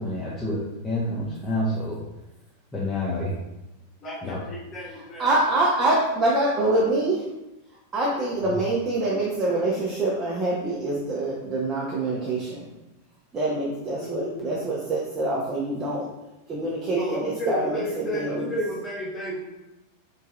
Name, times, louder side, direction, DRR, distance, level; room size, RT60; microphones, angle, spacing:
voice 1, 0.0-2.0 2.7-3.3 4.2-4.4 8.5-8.6, left 1 dB, 15° left, -7 dB, 0.6 m, -28 dB
voice 2, 4.0-5.3 14.0-14.5 16.9-19.4, equal, 30° left, -5 dB, 1.2 m, -32 dB
voice 3, 4.9-7.3 7.9-12.6 13.3-16.1 16.5-18.6, right 2 dB, 25° right, -5 dB, 0.6 m, -25 dB
3.0 x 2.7 x 2.5 m, 0.96 s
figure-of-eight pair, 90°, 0 cm